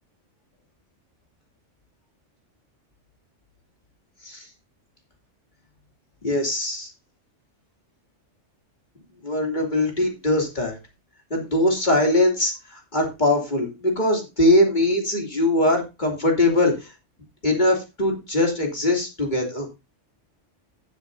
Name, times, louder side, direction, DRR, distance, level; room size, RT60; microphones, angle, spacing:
voice 1, 6.2-6.9 9.2-10.8 11.3-16.9 17.4-19.7, left 1 dB, 40° left, 1 dB, 2.9 m, -21 dB
16.0 x 7.4 x 2.7 m, 0.25 s
omnidirectional pair, 1.2 m